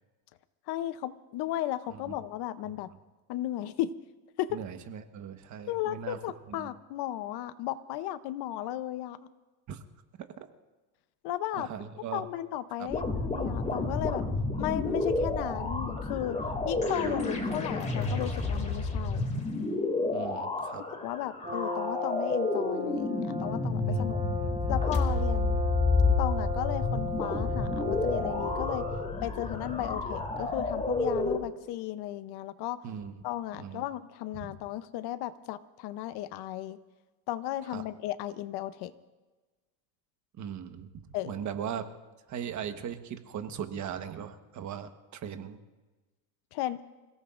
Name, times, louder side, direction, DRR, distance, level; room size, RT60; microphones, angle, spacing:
voice 1, 0.7-2.9 3.3-3.9 4.4-4.6 5.7-9.3 11.2-11.7 12.1-14.2 14.6-16.4 16.7-19.3 21.0-24.2 24.7-25.6 26.2-28.9 29.2-32.8 33.2-36.8 37.3-38.9 41.1-41.3 46.5-46.8, left 13 dB, 55° left, 13 dB, 0.8 m, -35 dB
voice 2, 4.5-6.2 6.5-6.7 9.7-9.8 11.6-12.3 12.8-12.9 16.9-17.2 20.1-20.8 23.9-24.1 32.8-33.1 33.6-33.9 34.4-34.5 37.7-37.8 40.4-40.9 41.2-41.8 42.3-45.6, right 8 dB, 40° right, 8 dB, 1.2 m, -39 dB
sound 1, 12.9-31.4, left 3 dB, 15° left, 2.4 m, -30 dB
Brass instrument, 21.4-29.2, left 2 dB, 15° right, 6.2 m, -36 dB
28.0 x 17.0 x 2.5 m, 1.2 s
cardioid pair, 140°, 47 cm